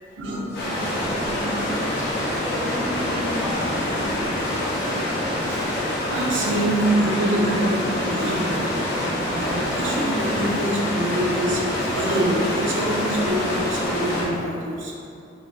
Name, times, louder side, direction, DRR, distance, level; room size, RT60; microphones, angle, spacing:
voice 1, 0.2-0.5 5.0-5.1 5.4-5.6 6.0-8.6 9.3-14.9, right 1 dB, 70° right, -3 dB, 0.6 m, -25 dB
sound 1, 0.5-14.2, left 1 dB, 60° left, 0.9 m, -25 dB
voice 2, 1.2-1.8 2.1-4.3, equal, 10° right, -10 dB, 0.8 m, -33 dB
4.0 x 2.6 x 2.6 m, 2.6 s
head